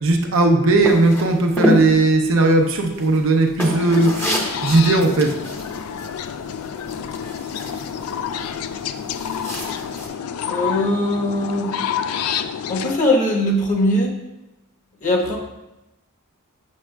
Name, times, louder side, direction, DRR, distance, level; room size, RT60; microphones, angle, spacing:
voice 1, 0.0-5.3, right 2 dB, 60° right, 3 dB, 0.6 m, -17 dB
sound 1, 0.8-10.1, equal, 10° left, 0.7 m, -29 dB
sound 2, 3.6-13.0, left 8 dB, 80° left, 0.3 m, -29 dB
voice 2, 10.5-11.7 12.7-14.2 15.0-15.4, left 1 dB, 35° left, -1 dB, 1.0 m, -20 dB
7.3 x 6.1 x 2.2 m, 0.96 s
head